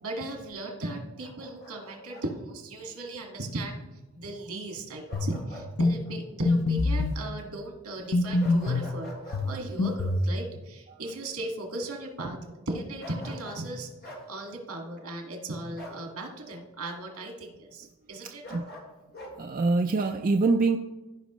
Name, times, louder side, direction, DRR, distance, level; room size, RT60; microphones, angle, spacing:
voice 1, 0.0-3.8 4.1-18.4, right 1 dB, 85° right, 2 dB, 1.9 m, -37 dB
Bark, 1.2-2.3 5.1-5.7 6.0-6.2 8.4-9.4 13.0-13.7 14.0-14.3 15.8-16.0 18.4-19.3, equal, 45° left, 1.7 m, -44 dB
sound 1, 5.1-5.4 5.8-6.0 6.5-7.2 8.1-8.9 9.3-10.3, left 2 dB, 75° left, 0.7 m, -25 dB
voice 2, 19.4-20.8, right 3 dB, 40° right, 5 dB, 0.3 m, -24 dB
15.5 x 5.3 x 3.1 m, 1.1 s
head